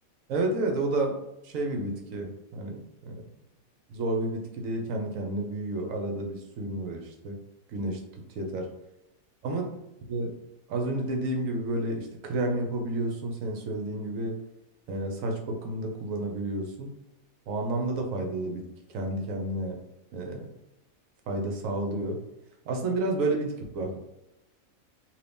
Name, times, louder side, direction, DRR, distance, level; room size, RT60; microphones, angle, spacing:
voice 1, 0.3-3.3 3.9-7.4 7.7-8.0 8.4-8.7 9.4-9.7 10.1-10.3 10.7-14.4 14.9-16.9 17.5-18.6 18.9-19.8 20.1-20.5 21.3-22.2 22.7-24.0, right 2 dB, 70° right, 2 dB, 1.0 m, -30 dB
2.7 x 2.6 x 3.4 m, 0.90 s
omnidirectional pair, 1.5 m